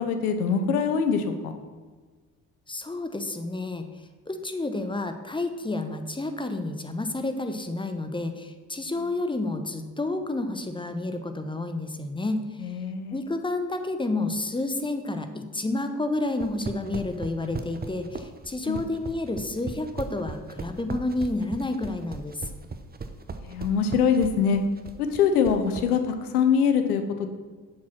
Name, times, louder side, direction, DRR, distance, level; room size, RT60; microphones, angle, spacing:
voice 1, 0.0-1.5 12.6-13.2 18.6-18.8 23.4-24.6 25.1-27.3, left 6 dB, 85° left, 7 dB, 0.8 m, -23 dB
voice 2, 2.7-3.9 4.3-12.7 13.1-22.5, left 2 dB, 10° left, 7 dB, 0.9 m, -30 dB
sound 1, 16.3-25.9, right 4 dB, 20° right, 0.8 m, -37 dB
7.3 x 4.8 x 5.9 m, 1.4 s
hypercardioid pair, 45°, 44 cm